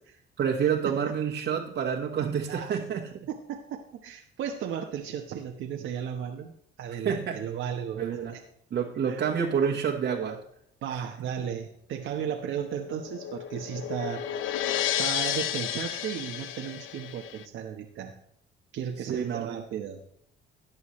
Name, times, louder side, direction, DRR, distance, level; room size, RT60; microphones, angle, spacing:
voice 1, 0.4-3.1 7.0-7.4 8.0-8.3 8.7-10.4 19.1-19.5, right 7 dB, 65° right, -2 dB, 1.5 m, -28 dB
voice 2, 2.5-2.8 3.3-6.5 6.8-8.0 8.3-8.4 9.1-9.2 10.8-14.3 14.5-18.2 18.7-20.0, right 8 dB, 80° right, 2 dB, 1.2 m, -35 dB
sound 1, 12.6-17.4, left 11 dB, 85° left, 0.6 m, -32 dB
14.5 x 9.5 x 3.2 m, 0.68 s
cardioid pair, 90°, 20 cm